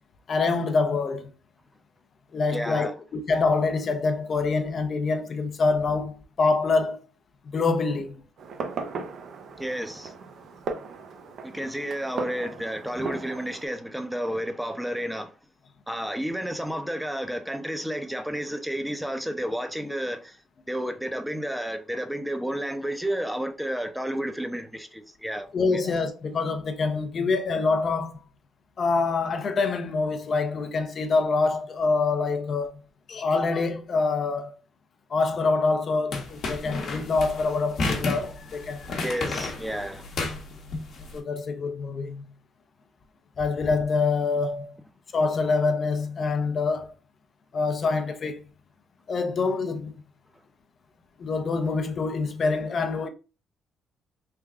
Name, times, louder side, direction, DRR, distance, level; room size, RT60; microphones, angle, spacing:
voice 1, 0.3-1.3 2.3-7.0 7.5-8.2 25.5-28.2 28.8-32.7 33.1-34.5 35.1-38.9 41.1-42.2 43.4-44.8 45.1-46.9 47.5-48.4 49.1-50.0 51.2-53.1, left 4 dB, 50° left, 0.5 m, -25 dB
voice 2, 2.5-3.0 9.6-10.2 11.4-15.3 15.9-20.4 20.7-25.8 39.0-40.1, equal, 5° right, 0.5 m, -31 dB
Fireworks, 8.4-13.7, right 4 dB, 65° right, 0.5 m, -37 dB
sound 1, 36.1-41.1, left 3 dB, 65° left, 0.9 m, -32 dB
3.3 x 2.3 x 3.5 m
cardioid pair, 90°, 0 cm